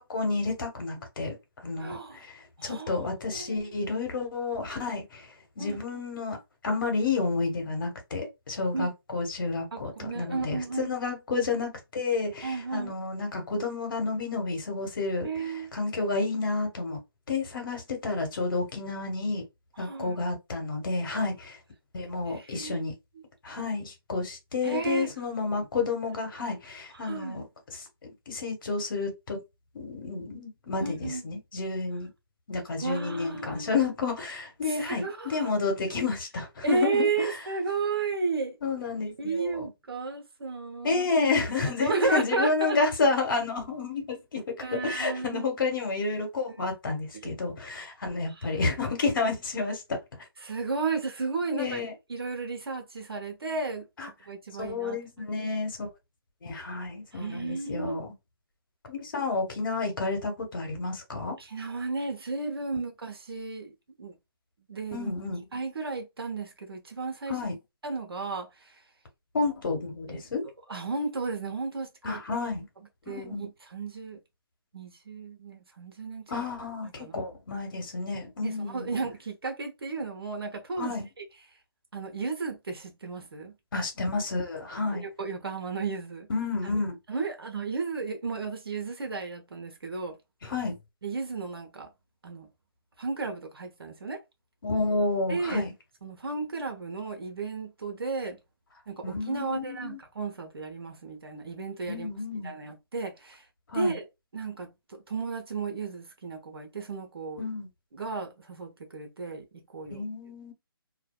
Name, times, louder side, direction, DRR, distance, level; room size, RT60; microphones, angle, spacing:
voice 1, 0.0-1.4 1.6-2.3 2.6-5.2 5.6-6.4 6.6-15.3 15.7-17.0 17.3-19.4 19.8-21.5 21.9-22.9 23.4-27.4 27.7-29.4 29.7-32.1 32.5-37.4 38.6-39.7 40.8-50.0 51.5-51.9 54.0-54.1 54.6-55.9 56.4-58.1 58.9-61.4 64.9-65.5 67.3-67.6 69.3-70.4 72.0-72.7 73.1-73.5 76.3-79.0 80.8-81.1 83.7-85.1 86.3-86.9 90.4-90.7 94.6-95.7 99.0-100.0 101.9-102.5 103.7-104.0 107.4-107.7 109.9-110.5, left 3 dB, 60° left, 1.2 m, -30 dB
voice 2, 1.8-2.2 2.6-3.0 3.3-3.7 5.6-5.8 8.7-8.9 9.7-10.9 12.4-12.9 15.2-15.7 19.8-20.2 22.3-22.9 24.6-25.1 27.0-27.4 30.8-31.2 32.8-33.9 34.6-35.5 36.6-38.6 39.2-41.0 41.8-42.8 44.6-45.4 46.6-46.7 47.1-47.3 48.4-48.5 50.4-51.8 52.1-53.9 54.3-55.3 57.1-58.0 61.4-64.1 64.7-65.1 65.5-67.4 67.8-68.5 70.1-70.3 70.7-72.2 73.1-74.2 74.7-76.2 76.8-77.2 78.4-81.0 81.9-83.5 84.9-86.3 87.1-90.2 91.0-91.9 92.2-92.5 93.0-94.2 95.3-95.7 96.0-98.4 98.9-102.1 102.4-103.4 103.7-104.0 104.3-107.4 107.9-110.0, right 4 dB, 80° right, 0.8 m, -33 dB
2.5 x 2.2 x 2.2 m
hypercardioid pair, 150°, 13 cm